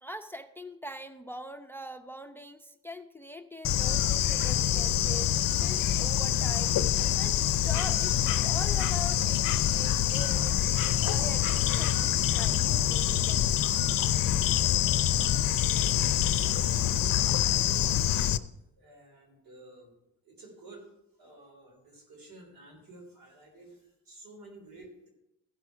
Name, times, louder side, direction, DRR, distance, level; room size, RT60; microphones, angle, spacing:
voice 1, 0.0-13.8, equal, 5° left, 9 dB, 0.6 m, -43 dB
Bird / Insect, 3.6-18.4, left 11 dB, 70° left, 0.6 m, -26 dB
voice 2, 16.0-18.3 18.8-19.9 20.2-20.9 21.2-25.1, right 2 dB, 75° right, 1 dB, 3.6 m, -52 dB
14.5 x 6.0 x 4.7 m, 0.88 s
cardioid pair, 65°, 34 cm